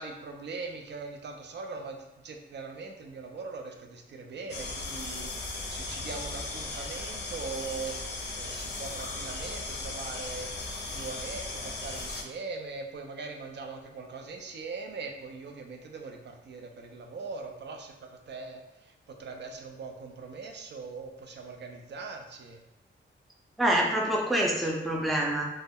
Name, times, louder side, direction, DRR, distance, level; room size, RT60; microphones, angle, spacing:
voice 1, 0.0-22.6, right 4 dB, 60° right, 3 dB, 0.4 m, -41 dB
sound 1, 4.5-12.2, left 2 dB, 55° left, 0.5 m, -37 dB
voice 2, 23.6-25.4, right 1 dB, ahead, -2 dB, 0.4 m, -26 dB
2.1 x 2.0 x 3.4 m, 0.97 s
wide cardioid pair, 110°, 20 cm